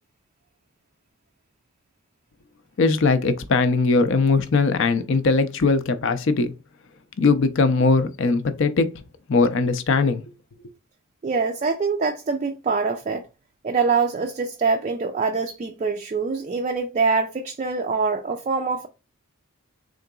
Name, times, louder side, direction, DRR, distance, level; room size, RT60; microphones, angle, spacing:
voice 1, 2.8-6.5 7.2-8.9 9.3-10.2, left 3 dB, 55° left, 0.5 m, -20 dB
voice 2, 11.2-13.3 13.6-18.9, right 4 dB, 30° right, 0.3 m, -24 dB
3.8 x 3.7 x 2.3 m
head